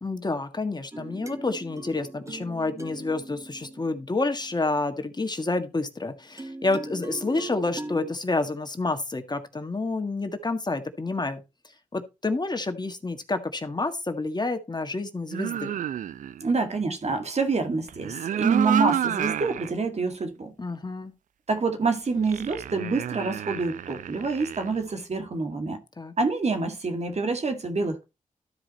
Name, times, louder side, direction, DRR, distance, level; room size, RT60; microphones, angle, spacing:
voice 1, 0.0-11.4 11.9-15.8 20.6-21.1 26.0-26.1, left 3 dB, 30° left, 1.6 m, -29 dB
sound 1, 0.9-5.2 6.4-8.1, right 2 dB, 20° right, 1.7 m, -40 dB
sound 2, 15.3-16.4 17.9-19.7 20.2-20.3 22.2-24.8, right 10 dB, 75° right, 0.4 m, -30 dB
voice 2, 16.4-20.5 21.5-25.8 26.2-28.0, right 4 dB, 55° right, 2.0 m, -27 dB
12.5 x 4.9 x 4.2 m
supercardioid pair, 40°, 14 cm